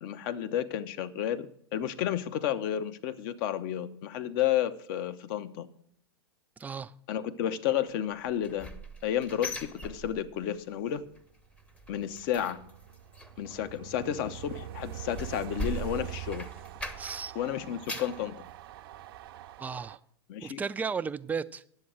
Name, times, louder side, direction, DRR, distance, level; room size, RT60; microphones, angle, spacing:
voice 1, 0.0-5.7 7.1-8.7 9.0-11.0 11.9-12.6 13.4-16.5 17.3-18.3 20.3-20.6, left 10 dB, 55° left, 0.8 m, -31 dB
voice 2, 6.6-6.9 17.0-17.3 19.6-20.0 20.4-21.6, right 5 dB, 10° right, 0.3 m, -34 dB
sound 1, 8.2-10.6 10.9-11.2 11.5-17.3 17.6-18.2 18.7-18.8 19.3-19.4, equal, 10° left, 0.8 m, -41 dB
Train, 11.5-20.0, right 13 dB, 60° right, 0.6 m, -44 dB
9.7 x 7.8 x 6.2 m
hypercardioid pair, 105°, 14 cm